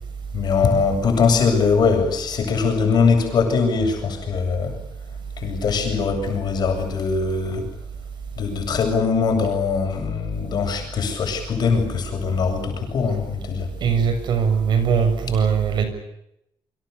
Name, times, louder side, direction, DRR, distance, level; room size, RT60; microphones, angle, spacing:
voice 1, 0.3-4.8 5.4-7.7 8.4-13.7, left 5 dB, 50° left, 4 dB, 7.7 m, -21 dB
voice 2, 13.8-15.8, right 6 dB, 55° right, 8 dB, 6.8 m, -20 dB
28.5 x 25.0 x 7.0 m, 0.81 s
cardioid pair, 160°, 9 cm